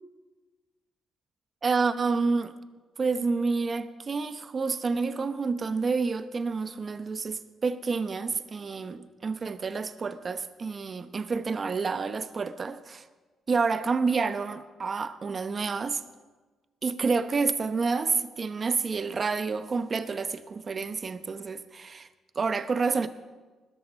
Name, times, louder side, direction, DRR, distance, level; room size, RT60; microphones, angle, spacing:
voice 1, 1.6-2.5 3.0-13.1 13.5-16.0 16.8-22.1 22.3-23.1, right 4 dB, 40° right, 12 dB, 0.9 m, -29 dB
20.0 x 13.5 x 5.3 m, 1.3 s
cardioid pair, 90°, 0 cm